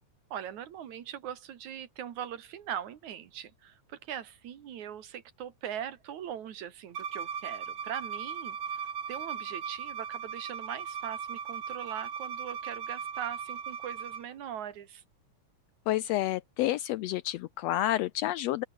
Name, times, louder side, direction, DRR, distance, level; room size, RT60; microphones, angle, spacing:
voice 1, 0.3-8.8 9.1-15.0, right 9 dB, 75° right, 3.1 m, -41 dB
Bowed string instrument, 6.9-14.2, right 7 dB, 45° right, 2.5 m, -38 dB
voice 2, 15.9-18.6, left 14 dB, 80° left, 1.5 m, -29 dB
open air
omnidirectional pair, 3.4 m